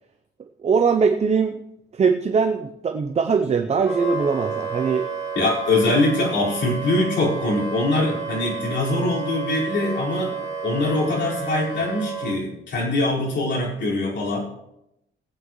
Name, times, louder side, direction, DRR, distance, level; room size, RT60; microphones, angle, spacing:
voice 1, 0.6-1.6 1.9-5.1, right 5 dB, 30° right, 6 dB, 0.6 m, -21 dB
Wind instrument woodwind instrument, 3.8-12.3, right 5 dB, 15° right, 5.2 m, -31 dB
voice 2, 5.3-14.5, left 2 dB, 65° left, -6 dB, 5.0 m, -23 dB
20.0 x 8.8 x 3.2 m, 0.85 s
wide cardioid pair, 155°, 21 cm